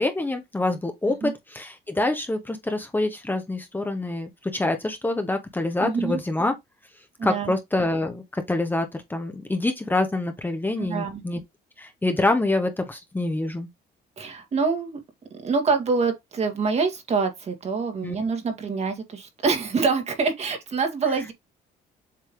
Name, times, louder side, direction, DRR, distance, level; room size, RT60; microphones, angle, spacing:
voice 1, 0.0-6.5 7.2-11.4 11.8-13.7 18.0-18.2, left 2 dB, 10° left, 1.2 m, -26 dB
voice 2, 5.8-6.2 7.2-7.5 10.8-11.2 14.2-15.0 15.3-21.3, right 4 dB, 40° right, 2.0 m, -25 dB
7.6 x 3.3 x 3.8 m
cardioid pair, 110°, 17 cm